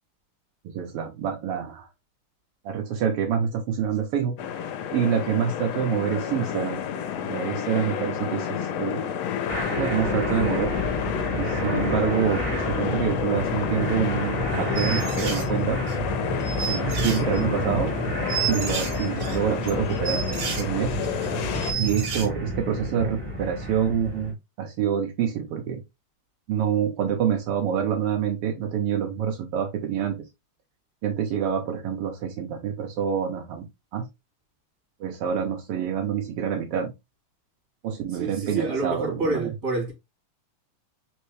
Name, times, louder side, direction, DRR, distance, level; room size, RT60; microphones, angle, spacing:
voice 1, 0.6-1.9 2.6-4.3 4.9-6.8 7.3-8.5 8.8-9.1 9.8-10.7 11.3-15.8 16.7-17.9 18.5-20.9 21.8-25.8 26.5-30.2 31.0-33.6 33.9-34.0 35.0-36.9 37.8-39.5, right 8 dB, 85° right, 1.3 m, -27 dB
sound 1, 4.4-21.7, left 8 dB, 75° left, 1.5 m, -30 dB
sound 2, 9.5-24.3, equal, 5° right, 1.8 m, -30 dB
sound 3, 14.8-15.5 15.9-16.0 16.4-17.6 17.9-18.0 18.3-20.6 21.0-21.3 21.5-22.3, right 7 dB, 55° right, 1.3 m, -31 dB
voice 2, 38.1-39.9, right 3 dB, 30° right, 1.9 m, -28 dB
4.4 x 3.5 x 3.2 m
omnidirectional pair, 3.7 m